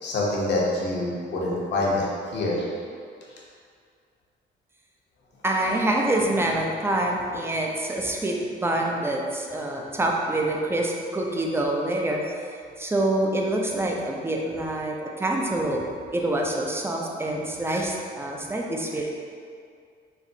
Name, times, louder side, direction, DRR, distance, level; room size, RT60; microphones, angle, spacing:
voice 1, 0.0-2.1 2.3-2.6, left 2 dB, 60° left, -4 dB, 0.8 m, -25 dB
voice 2, 5.4-8.3 8.6-12.4 12.8-15.8 16.1-19.1, right 1 dB, 10° right, 0 dB, 0.4 m, -26 dB
4.1 x 2.0 x 2.6 m, 2.2 s
cardioid pair, 90°, 20 cm